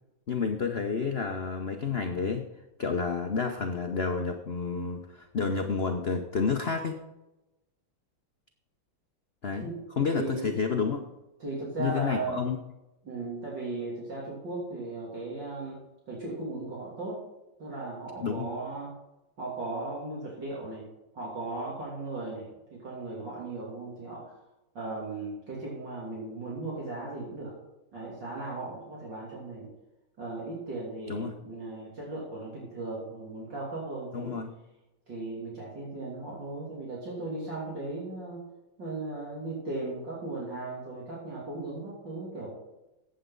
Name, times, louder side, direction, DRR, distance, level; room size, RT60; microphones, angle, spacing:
voice 1, 0.3-2.5 2.8-7.0 9.4-9.7 10.0-11.1 11.8-12.6 18.2-18.5 31.1-31.3 34.1-34.5, left 5 dB, 80° left, 4 dB, 0.5 m, -30 dB
voice 2, 10.1-10.6 11.4-12.4 13.0-17.2 17.6-18.9 19.4-20.8 21.1-24.3 24.8-27.5 27.9-29.7 30.2-34.4 35.1-38.4 38.8-42.5, right 2 dB, 55° right, -5 dB, 3.5 m, -37 dB
15.0 x 8.5 x 3.9 m, 0.96 s
omnidirectional pair, 2.4 m